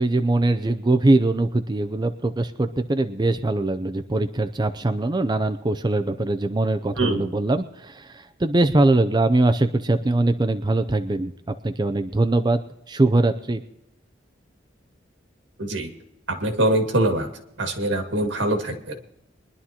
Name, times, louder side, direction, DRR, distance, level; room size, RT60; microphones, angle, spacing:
voice 1, 0.0-12.6 12.9-13.6, right 2 dB, 25° right, 8 dB, 0.5 m, -22 dB
voice 2, 15.6-15.9 16.4-17.3 17.6-19.0, right 1 dB, 80° right, 4 dB, 2.0 m, -23 dB
23.0 x 11.0 x 2.9 m, 0.82 s
head